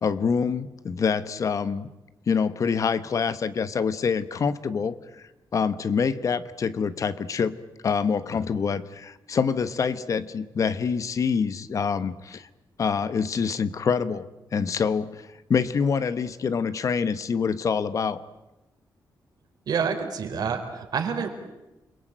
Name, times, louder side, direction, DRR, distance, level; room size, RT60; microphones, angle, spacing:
voice 1, 0.0-1.9 2.3-5.0 5.5-7.6 7.8-12.5 12.8-18.2, left 6 dB, 45° left, 14 dB, 1.2 m, -26 dB
voice 2, 19.7-21.3, right 6 dB, 65° right, 5 dB, 4.3 m, -28 dB
29.5 x 22.0 x 9.1 m, 1.0 s
wide cardioid pair, 160°, 7 cm